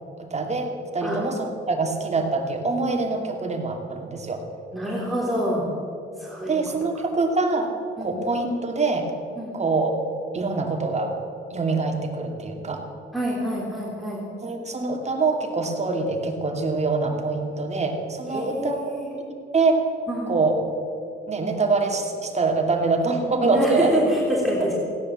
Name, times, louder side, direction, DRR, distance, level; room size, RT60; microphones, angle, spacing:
voice 1, 0.3-4.4 6.5-7.7 8.0-9.1 9.5-10.0 10.3-11.1 11.5-12.8 14.4-18.8 19.5-19.8 20.3-20.6 21.3-24.0 24.6-24.7, right 3 dB, 35° right, 3 dB, 2.4 m, -24 dB
voice 2, 4.7-5.7 6.2-6.6 8.0-8.1 9.4-9.6 13.1-14.2 18.3-19.1 20.1-20.3 23.5-24.8, equal, ahead, -5 dB, 3.2 m, -26 dB
16.5 x 10.5 x 7.3 m, 2.6 s
cardioid pair, 90°, 20 cm